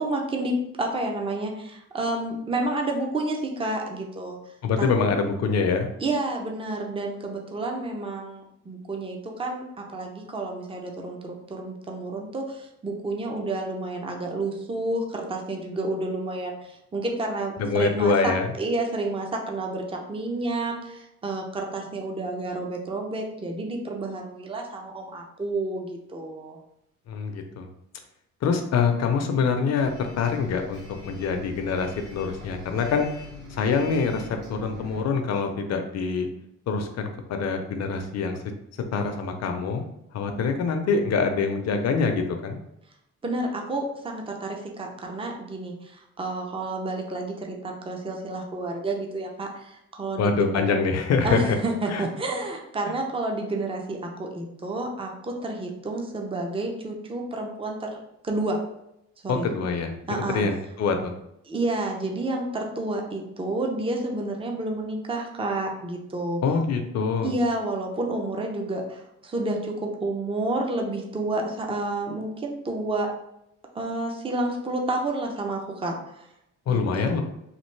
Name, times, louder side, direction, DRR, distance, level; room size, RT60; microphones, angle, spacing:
voice 1, 0.0-4.4 4.8-4.9 6.0-18.3 18.6-26.6 43.2-50.8 51.2-58.0 58.2-58.6 59.2-59.5 60.1-60.4 61.4-66.4 67.2-73.1 73.7-76.2 76.7-77.2, right 2 dB, 20° right, 1 dB, 0.6 m, -30 dB
voice 2, 4.6-5.9 17.6-18.5 27.1-27.7 28.4-33.1 33.5-36.3 36.7-38.4 38.9-39.8 40.1-42.6 50.2-51.6 51.9-52.1 52.8-52.9 59.3-59.9 60.3-61.1 66.4-67.3 76.7-77.2, left 5 dB, 60° left, 6 dB, 0.6 m, -25 dB
Bus, 29.8-35.0, left 2 dB, 50° right, 1.1 m, -44 dB
3.2 x 2.4 x 3.2 m, 0.80 s
cardioid pair, 90°, 30 cm